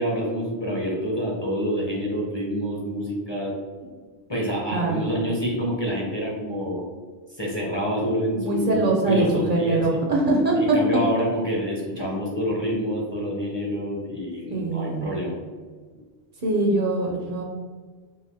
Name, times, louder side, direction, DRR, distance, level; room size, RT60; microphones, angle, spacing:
voice 1, 0.0-3.5 4.3-6.8 7.4-10.0 10.6-15.3, equal, 30° left, -3 dB, 0.7 m, -27 dB
voice 2, 4.7-5.0 8.3-10.8 14.5-15.1 16.4-17.4, right 2 dB, 55° right, -1 dB, 0.8 m, -23 dB
4.8 x 2.5 x 3.4 m, 1.5 s
omnidirectional pair, 1.1 m